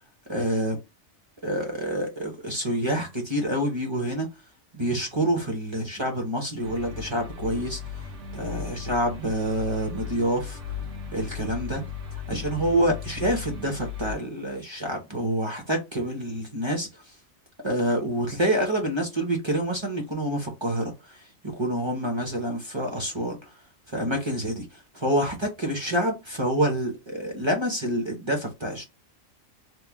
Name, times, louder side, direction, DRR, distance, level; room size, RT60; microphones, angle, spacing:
voice 1, 0.3-0.8 1.4-4.3 4.7-8.0 8.3-10.6 11.1-11.8 12.3-17.0 17.6-23.5 23.9-28.8, right 1 dB, 30° right, 0.6 m, -27 dB
sound 1, 6.6-14.1, left 7 dB, 65° right, 0.9 m, -37 dB
3.0 x 2.1 x 3.4 m
omnidirectional pair, 1.4 m